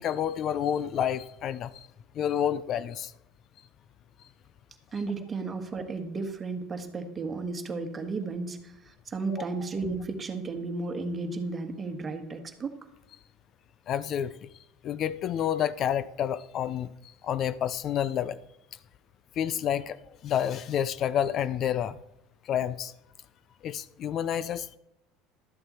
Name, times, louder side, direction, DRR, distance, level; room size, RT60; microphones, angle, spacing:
voice 1, 0.0-1.9 2.2-3.1 9.4-9.5 13.9-14.3 14.8-16.9 17.2-18.4 19.4-22.0 22.4-22.9 23.6-24.8, left 9 dB, 45° left, 0.4 m, -29 dB
voice 2, 4.9-12.8, right 3 dB, 25° right, 1.6 m, -34 dB
12.5 x 7.7 x 4.3 m
supercardioid pair, 105°, 0 cm